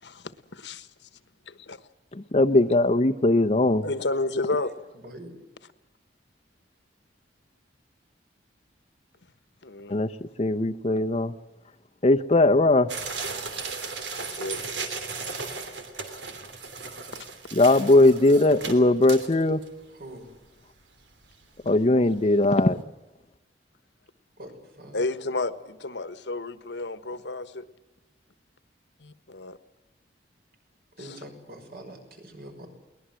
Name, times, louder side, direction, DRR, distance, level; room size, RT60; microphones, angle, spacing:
voice 1, 0.0-0.9 1.5-1.8 3.8-4.7 9.6-9.9 14.2-14.6 21.6-21.7 24.9-27.7 29.0-29.6, left 2 dB, 75° left, 12 dB, 1.4 m, -31 dB
voice 2, 2.3-3.8 9.9-10.1 10.4-11.3 12.0-12.9 17.5-19.6 21.7-22.8, left 2 dB, 35° left, 6 dB, 0.8 m, -19 dB
voice 3, 4.9-5.3 19.9-20.3 24.4-25.0 31.0-32.7, right 1 dB, 60° right, 4 dB, 6.1 m, -44 dB
sound 1, 12.9-19.7 20.2-20.3 20.5-20.6 21.1-21.4 21.7-21.9 22.2-22.3, right 4 dB, 85° right, 3.1 m, -36 dB
23.0 x 19.5 x 7.6 m, 1.0 s
head